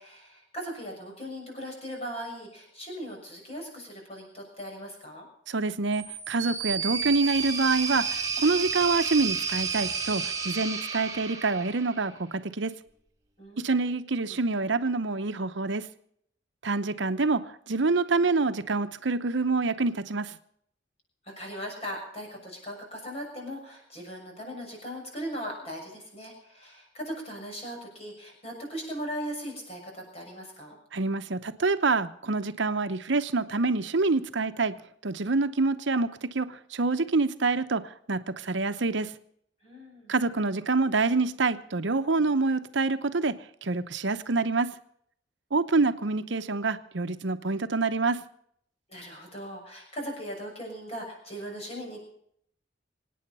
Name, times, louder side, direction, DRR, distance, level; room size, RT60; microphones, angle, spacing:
voice 1, 0.0-5.2 13.4-13.7 21.2-30.8 39.6-40.1 48.9-52.0, equal, 30° left, 0 dB, 6.6 m, -39 dB
voice 2, 5.5-12.7 13.6-15.9 16.6-20.4 30.9-34.7 35.0-39.1 40.1-43.3 43.6-44.7 45.5-48.2, right 3 dB, 70° right, 10 dB, 0.8 m, -26 dB
sound 1, 5.9-12.1, right 5 dB, 20° right, 2.2 m, -31 dB
25.0 x 9.4 x 5.5 m, 0.68 s
head